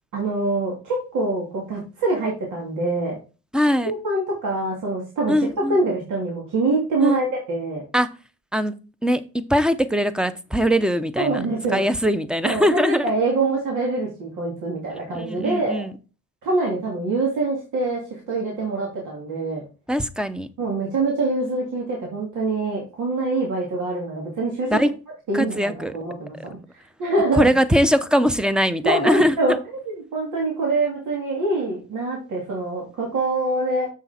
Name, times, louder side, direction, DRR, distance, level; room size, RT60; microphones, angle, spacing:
voice 1, 0.1-3.2 3.8-5.3 5.7-7.8 11.2-11.9 12.4-15.9 16.4-19.6 20.6-24.7 25.3-26.6 27.0-27.5 28.8-33.9, right 2 dB, 75° right, 2.9 m, -24 dB
voice 2, 3.5-3.9 5.3-5.8 7.0-7.2 7.9-8.1 8.5-8.7 9.0-9.2 9.5-11.4 11.7-13.1 15.1-15.9 19.9-20.5 24.7-24.9 25.3-25.9 27.3-29.6, equal, 5° right, 0.8 m, -21 dB
7.2 x 6.1 x 4.4 m
cardioid pair, 90°, 30 cm